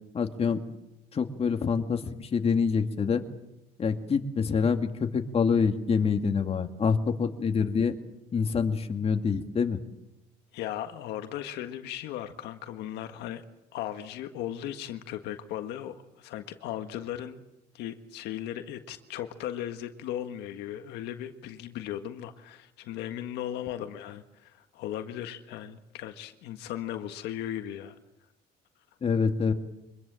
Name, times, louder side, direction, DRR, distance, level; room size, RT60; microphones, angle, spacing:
voice 1, 0.1-0.6 1.1-3.2 3.8-7.9 8.3-9.8 29.0-29.5, left 5 dB, 35° left, 5 dB, 2.2 m, -26 dB
voice 2, 10.5-13.4 13.7-17.4 17.7-27.9, left 11 dB, 85° left, 7 dB, 1.6 m, -37 dB
25.0 x 21.0 x 7.6 m, 0.90 s
cardioid pair, 110°, 17 cm